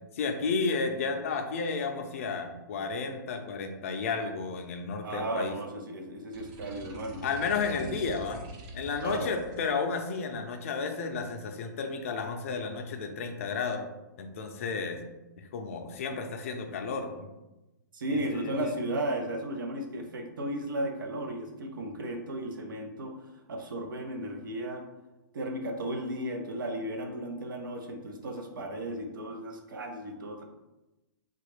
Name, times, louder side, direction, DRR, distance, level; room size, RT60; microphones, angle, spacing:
voice 1, 0.1-5.5 7.2-8.4 8.7-13.8 14.2-15.0 15.4-17.3 18.1-18.7, left 4 dB, 40° left, 5 dB, 0.4 m, -32 dB
voice 2, 5.0-7.2 9.0-9.3 17.9-23.1 23.5-24.8 25.3-30.4, right 1 dB, 85° right, 4 dB, 0.7 m, -35 dB
sound 1, 6.3-9.7, right 2 dB, 20° right, 0.4 m, -45 dB
3.6 x 2.3 x 3.2 m, 1.0 s
hypercardioid pair, 170°, 11 cm